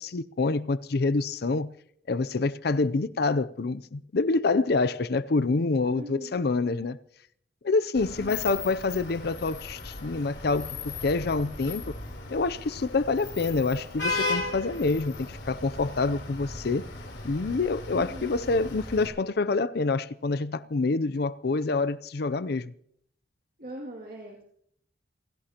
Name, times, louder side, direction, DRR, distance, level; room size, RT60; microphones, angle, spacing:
voice 1, 0.0-1.7 2.1-7.0 7.6-11.9 12.3-16.9 17.2-22.7, left 3 dB, 60° left, 0.5 m, -27 dB
voice 2, 5.9-6.4 8.2-8.6 17.9-18.4 23.6-24.4, equal, 55° right, 2.4 m, -41 dB
Vehicle horn car horn honking / Traffic noise roadway noise, 7.9-19.1, left 3 dB, 85° left, 3.6 m, -36 dB
27.5 x 16.0 x 2.9 m
head